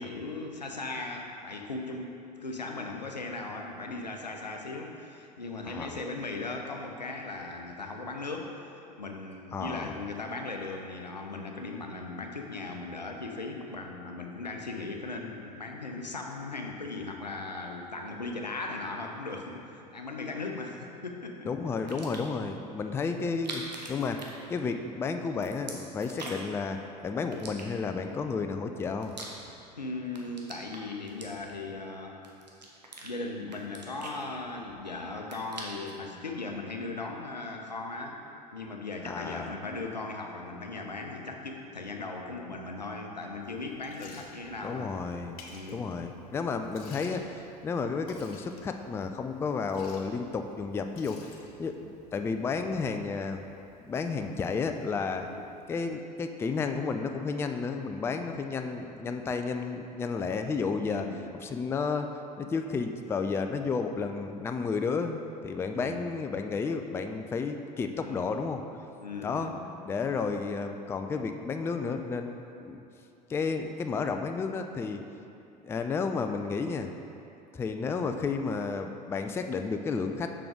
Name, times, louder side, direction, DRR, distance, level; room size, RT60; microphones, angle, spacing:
voice 1, 0.0-21.5 29.8-32.2 33.0-38.2 38.5-44.9 45.5-45.9 55.2-55.5 60.9-61.3 65.7-66.1 68.0-68.3 69.0-69.6 77.8-78.1, left 3 dB, 85° left, 2 dB, 0.6 m, -38 dB
voice 2, 5.7-6.0 9.5-10.0 21.5-23.6 23.9-29.1 39.0-39.5 44.6-45.4 45.7-53.4 53.9-55.3 55.7-61.1 61.3-68.6 69.2-69.5 69.8-72.8 73.3-75.0 75.6-76.9 77.5-80.3, left 4 dB, 10° left, 6 dB, 0.3 m, -32 dB
sound 1, 21.9-22.4 23.3-24.9 25.2-26.6 27.3-28.1 28.7-29.8 30.1-31.7 32.2-33.1 33.5-34.8 35.1-36.0, right 2 dB, 85° right, 0.8 m, -44 dB
Liquid, 43.4-55.8, left 4 dB, 60° left, 0.8 m, -55 dB
6.8 x 6.0 x 3.6 m, 2.7 s
figure-of-eight pair, 70°, 21 cm